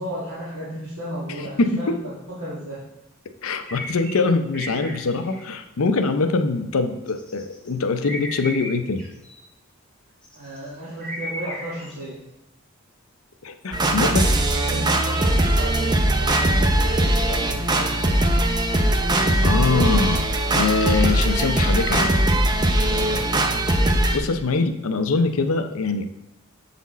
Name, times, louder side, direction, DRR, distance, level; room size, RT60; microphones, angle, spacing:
voice 1, 0.0-2.8 10.3-12.2 13.9-18.1 23.0-23.3, equal, 70° right, -8 dB, 1.7 m, -34 dB
voice 2, 3.4-9.1 13.4-14.2 19.4-20.2 20.5-22.2 24.1-26.1, left 3 dB, 70° left, 7 dB, 0.6 m, -23 dB
sound 1, 3.7-4.2 4.5-5.5 7.1-7.7 8.0-9.4 10.2-10.7 11.0-11.9, equal, 5° left, 1.7 m, -35 dB
sound 2, 13.7-24.2, right 1 dB, 20° right, 0.5 m, -20 dB
7.2 x 4.2 x 4.1 m, 0.87 s
head